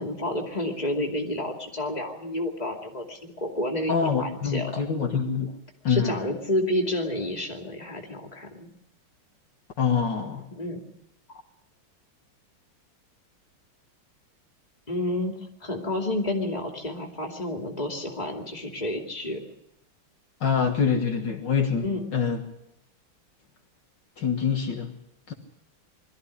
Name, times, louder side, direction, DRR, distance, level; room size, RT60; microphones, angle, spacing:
voice 1, 0.0-4.7 5.9-8.7 10.6-10.8 14.9-15.3 15.6-19.4 21.8-22.0, left 1 dB, 20° left, 3 dB, 2.7 m, -30 dB
voice 2, 3.9-5.6 5.8-6.3 9.8-10.5 20.4-21.9 22.1-22.4 24.2-24.9 25.3-25.4, left 6 dB, 60° left, 3 dB, 2.1 m, -25 dB
22.5 x 14.0 x 9.9 m, 0.82 s
omnidirectional pair, 2.3 m